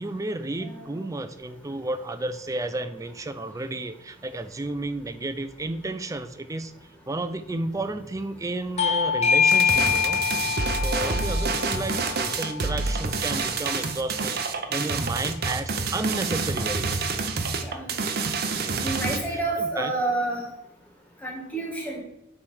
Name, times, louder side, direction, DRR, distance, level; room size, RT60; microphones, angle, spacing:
voice 1, 0.0-6.7 7.1-10.2 10.8-17.0 19.0-19.9, right 2 dB, 15° right, 10 dB, 0.4 m, -32 dB
voice 2, 0.6-1.0 10.9-11.2 17.6-18.0 18.8-20.5 21.2-22.0, right 2 dB, 10° left, -1 dB, 1.9 m, -29 dB
Bell / Doorbell, 8.8-14.0, left 7 dB, 35° left, 0.8 m, -25 dB
sound 1, 9.5-19.2, right 4 dB, 50° right, 0.7 m, -28 dB
8.5 x 3.4 x 6.3 m, 0.85 s
head